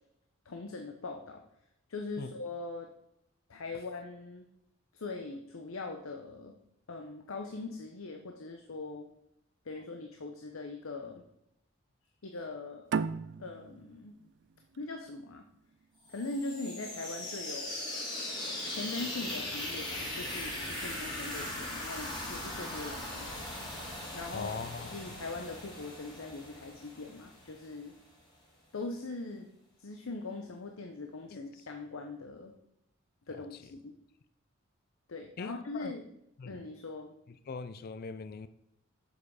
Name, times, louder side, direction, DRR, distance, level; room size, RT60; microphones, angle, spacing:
voice 1, 0.4-1.4 1.9-2.9 3.5-4.5 4.9-6.5 6.9-9.1 9.7-11.2 12.2-12.9 13.4-14.1 14.8-15.4 16.1-17.8 18.7-23.5 24.1-24.5 24.8-27.9 28.7-29.5 29.8-32.5 33.3-33.9 35.1-36.0 36.4-37.1, left 3 dB, 90° left, 0.8 m, -41 dB
sound 1, 12.9-16.1, right 5 dB, 60° right, 0.4 m, -36 dB
sound 2, 16.1-27.8, left 1 dB, 20° left, 2.4 m, -39 dB
voice 2, 24.3-25.0 33.3-33.4 35.4-35.9 36.4-36.6 37.5-38.5, left 4 dB, 50° left, 0.4 m, -41 dB
7.3 x 6.8 x 4.8 m
head